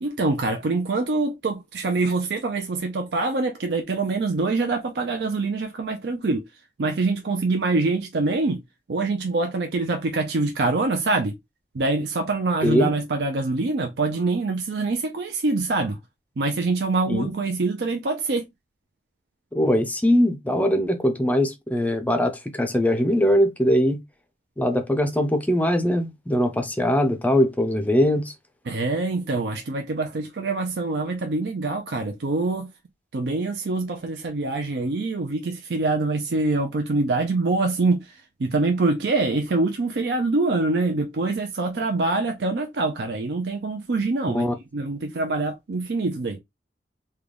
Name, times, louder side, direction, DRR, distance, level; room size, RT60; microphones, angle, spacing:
voice 1, 0.0-6.4 6.8-8.6 8.9-11.3 11.7-16.0 16.4-18.5 28.7-32.7 33.1-44.5 44.7-46.4, right 3 dB, 70° right, 0.5 m, -25 dB
voice 2, 12.6-12.9 17.1-17.3 19.5-24.0 24.6-28.3 44.3-44.5, equal, 10° left, 0.5 m, -21 dB
3.7 x 2.3 x 3.3 m
head